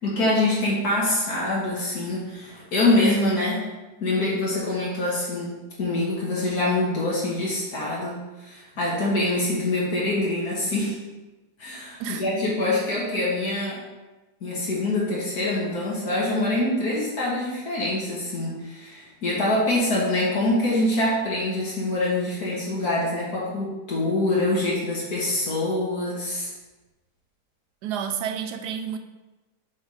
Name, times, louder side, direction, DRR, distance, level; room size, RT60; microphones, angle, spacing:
voice 1, 0.0-3.6 4.0-11.0 11.6-13.8 14.4-26.5, left 2 dB, 70° left, 2.0 m, -25 dB
voice 2, 12.0-12.4 27.8-29.0, right 8 dB, 85° right, 1.2 m, -30 dB
7.2 x 3.8 x 4.9 m
omnidirectional pair, 1.7 m